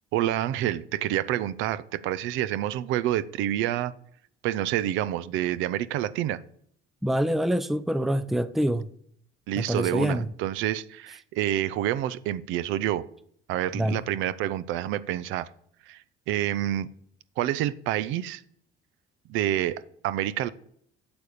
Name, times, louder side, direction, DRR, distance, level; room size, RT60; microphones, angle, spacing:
voice 1, 0.1-3.9 4.4-6.4 9.5-13.1 13.5-15.5 15.9-16.0 16.3-16.9 17.4-18.4 19.3-20.5, right 12 dB, 75° right, 0.6 m, -28 dB
voice 2, 7.0-8.9 9.6-10.3 13.7-14.0, equal, ahead, 0.4 m, -25 dB
8.8 x 7.0 x 6.7 m
cardioid pair, 130°, 20 cm